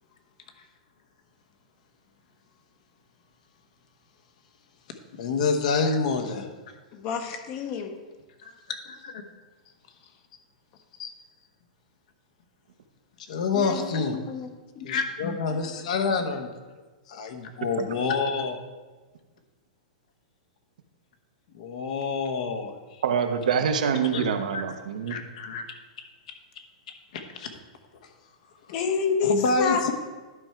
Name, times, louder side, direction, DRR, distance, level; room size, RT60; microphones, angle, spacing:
voice 1, 5.1-6.5 8.4-9.2 11.0-11.1 13.2-14.2 14.8-16.5 17.1-18.6 21.5-23.0 24.1-24.3 24.5-24.7 25.1-25.6 26.3-26.4 26.9-27.5 29.2-29.9, left 4 dB, 65° left, 6 dB, 1.1 m, -28 dB
voice 2, 6.9-7.9 13.5-13.8 14.3-14.5 14.8-14.9 15.2-15.4 28.7-29.8, left 5 dB, 40° left, 5 dB, 0.9 m, -28 dB
voice 3, 23.0-25.2, right 7 dB, 80° right, 7 dB, 0.9 m, -25 dB
11.5 x 4.7 x 4.5 m, 1.3 s
hypercardioid pair, 135°, 4 cm